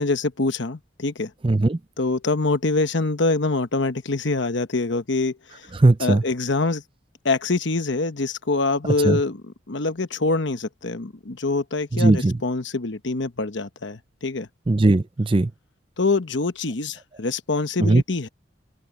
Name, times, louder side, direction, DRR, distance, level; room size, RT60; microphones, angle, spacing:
voice 1, 0.0-1.3 2.0-5.7 6.0-6.8 7.2-14.5 16.0-18.3, left 3 dB, 65° left, 1.1 m, -25 dB
voice 2, 1.4-1.8 5.8-6.2 9.0-9.2 11.9-12.4 14.7-15.5 17.8-18.0, right 2 dB, 25° right, 0.5 m, -18 dB
open air
head